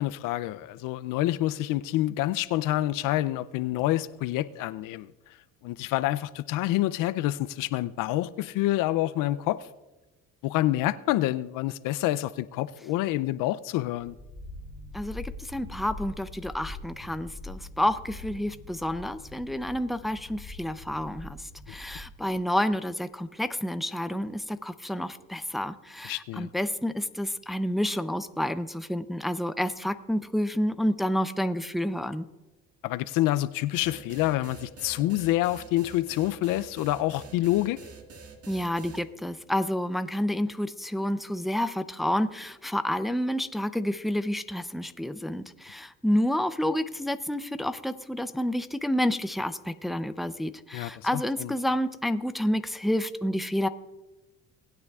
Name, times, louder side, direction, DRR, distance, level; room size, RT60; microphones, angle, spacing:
voice 1, 0.0-5.1 5.6-9.6 10.4-14.1 26.1-26.5 32.8-37.8 50.7-50.9 51.4-51.5, left 15 dB, 70° left, 0.5 m, -27 dB
sound 1, 14.0-22.4, left 2 dB, 55° left, 2.0 m, -43 dB
voice 2, 14.9-32.3 38.5-53.7, left 1 dB, ahead, 0.6 m, -29 dB
sound 2, 33.8-39.0, right 4 dB, 45° right, 1.8 m, -46 dB
19.5 x 9.2 x 2.4 m
supercardioid pair, 75°, 33 cm